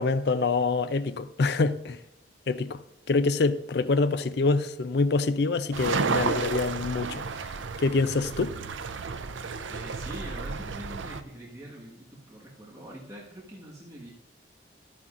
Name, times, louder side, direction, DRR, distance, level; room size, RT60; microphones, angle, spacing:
voice 1, 0.0-2.0 2.5-2.8 3.1-7.2 7.8-8.5, left 3 dB, 60° left, 0.5 m, -25 dB
sound 1, 5.7-11.2, right 4 dB, 85° right, 0.6 m, -32 dB
voice 2, 9.7-14.1, right 1 dB, 15° right, 1.5 m, -44 dB
12.0 x 9.7 x 2.5 m
head